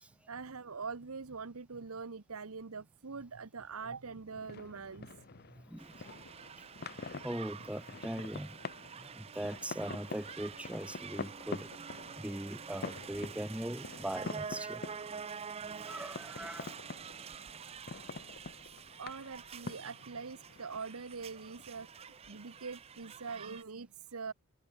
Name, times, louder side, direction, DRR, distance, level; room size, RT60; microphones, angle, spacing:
voice 1, 0.3-5.2 19.0-24.3, right 5 dB, 90° right, 1.0 m, -43 dB
sound 1, 4.0-23.3, left 3 dB, 45° left, 0.9 m, -47 dB
voice 2, 5.5-6.0 7.2-8.6 9.0-11.7 12.2-14.8 15.8-16.7, right 1 dB, 5° right, 1.0 m, -40 dB
sound 2, 5.8-23.6, right 6 dB, 30° right, 0.4 m, -47 dB
head